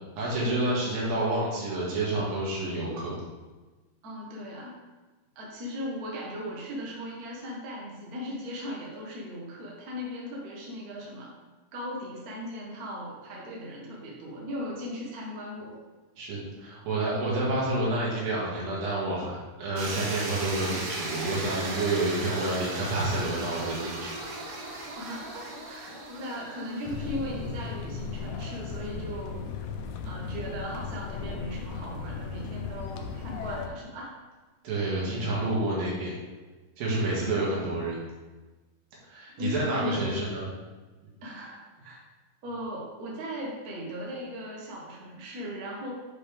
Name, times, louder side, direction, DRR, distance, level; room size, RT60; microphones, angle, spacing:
voice 1, 0.2-3.2 16.2-24.2 34.6-36.1 36.8-38.0 39.1-40.5, right 2 dB, 85° right, -5 dB, 3.7 m, -29 dB
voice 2, 4.0-4.7 5.3-11.3 11.7-15.7 24.9-29.5 30.0-34.1 39.4-40.3 41.2-42.0 42.4-45.9, equal, 45° right, -3 dB, 1.2 m, -38 dB
sound 1, 19.8-27.8, right 2 dB, 65° right, 1.4 m, -37 dB
sound 2, 26.9-33.7, left 5 dB, 80° left, 1.7 m, -36 dB
8.3 x 5.1 x 3.4 m, 1.3 s
omnidirectional pair, 4.0 m